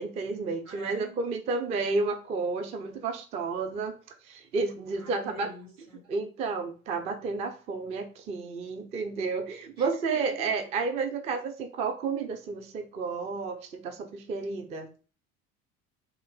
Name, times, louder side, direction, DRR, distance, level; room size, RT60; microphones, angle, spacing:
voice 1, 0.0-3.9 4.3-5.5 6.1-14.9, right 4 dB, 15° right, 6 dB, 0.3 m, -31 dB
voice 2, 0.6-1.2 5.0-6.0 9.8-10.8, right 2 dB, 85° right, -2 dB, 1.4 m, -46 dB
3.0 x 2.4 x 4.3 m, 0.37 s
figure-of-eight pair, 70°, 43 cm